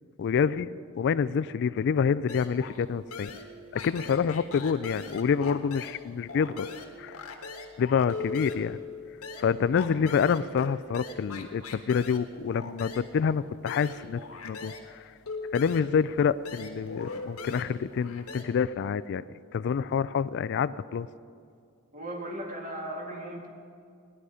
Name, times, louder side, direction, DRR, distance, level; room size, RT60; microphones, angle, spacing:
voice 1, 0.2-0.7 0.9-3.3 3.7-6.7 7.0-7.2 7.8-8.8 9.4-14.7 15.5-19.3 19.5-21.1, left 6 dB, 55° left, 16 dB, 0.3 m, -27 dB
sound 1, 2.3-2.8 3.1-6.0 6.3-14.9 15.3-18.4, left 4 dB, 85° left, 1.3 m, -40 dB
voice 2, 21.9-23.5, right 1 dB, 40° right, -1 dB, 2.3 m, -37 dB
17.0 x 11.0 x 4.9 m, 2.3 s
head